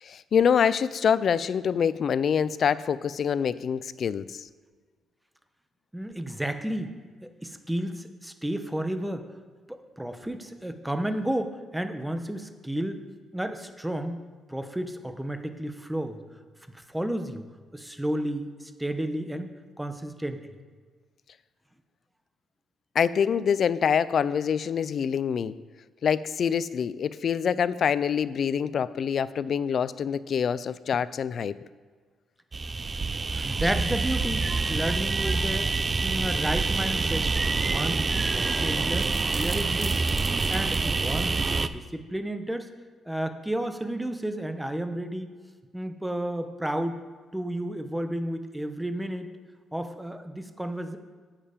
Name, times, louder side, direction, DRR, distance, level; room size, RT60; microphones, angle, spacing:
voice 1, 0.0-4.5 23.0-25.5 26.0-31.6, left 7 dB, 55° left, 17 dB, 0.4 m, -25 dB
voice 2, 5.9-6.9 7.2-9.3 9.7-13.0 13.3-14.2 14.5-16.2 16.7-17.4 17.7-20.4 33.3-35.7 36.0-37.3 37.6-40.0 40.5-42.7 43.1-45.3 45.7-47.0 47.3-49.3 49.7-51.0, right 1 dB, 5° right, 8 dB, 0.9 m, -32 dB
sound 1, 32.5-41.7, right 4 dB, 30° right, 0.4 m, -26 dB
8.9 x 7.4 x 5.1 m, 1.5 s
cardioid pair, 90°, 0 cm